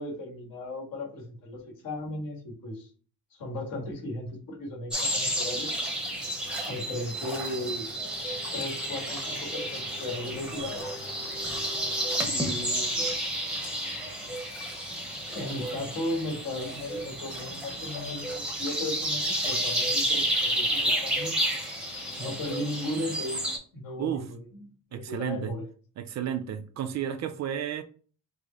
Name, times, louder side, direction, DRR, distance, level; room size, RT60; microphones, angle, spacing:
voice 1, 0.0-2.9 3.3-5.7 6.7-7.9 8.5-10.8 12.2-13.4 15.3-21.4 22.2-23.4 23.7-24.4 24.9-25.7, left 1 dB, 65° left, 1.8 m, -36 dB
sound 1, 4.9-23.6, right 1 dB, 5° right, 0.8 m, -31 dB
voice 2, 24.0-24.3 24.9-25.5 26.0-27.8, right 9 dB, 50° right, 0.4 m, -32 dB
4.8 x 2.1 x 3.9 m
cardioid pair, 170°, 36 cm